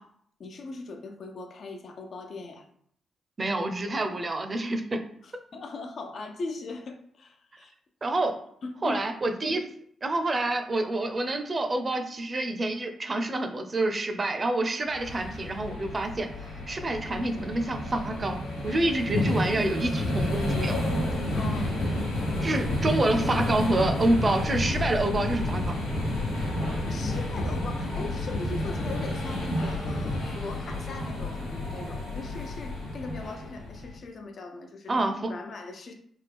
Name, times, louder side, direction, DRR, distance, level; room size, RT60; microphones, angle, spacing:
voice 1, 0.4-2.6 5.2-7.7 8.6-9.0 21.3-21.8 22.4-22.5 26.8-35.9, left 3 dB, 60° left, 4 dB, 0.6 m, -39 dB
voice 2, 3.4-5.0 8.0-8.3 8.8-9.7 10.0-16.3 16.7-20.8 22.4-25.8 34.9-35.3, right 2 dB, 40° right, 6 dB, 0.6 m, -27 dB
sound 1, 14.9-34.0, left 1 dB, 90° left, 1.0 m, -30 dB
3.5 x 2.3 x 3.4 m, 0.65 s
hypercardioid pair, 45°, 0 cm